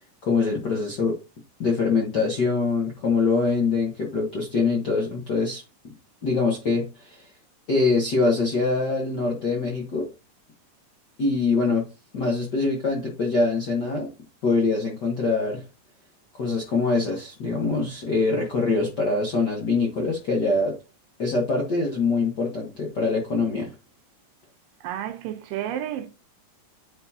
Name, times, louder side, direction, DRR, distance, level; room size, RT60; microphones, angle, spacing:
voice 1, 0.2-1.2 1.6-5.9 6.2-7.3 7.7-10.1 11.2-11.8 12.1-14.1 14.4-15.6 16.3-20.8 21.2-23.7, left 3 dB, 60° left, 1.1 m, -24 dB
voice 2, 24.8-26.1, right 11 dB, 80° right, 2.5 m, -31 dB
9.9 x 4.4 x 2.8 m
omnidirectional pair, 3.9 m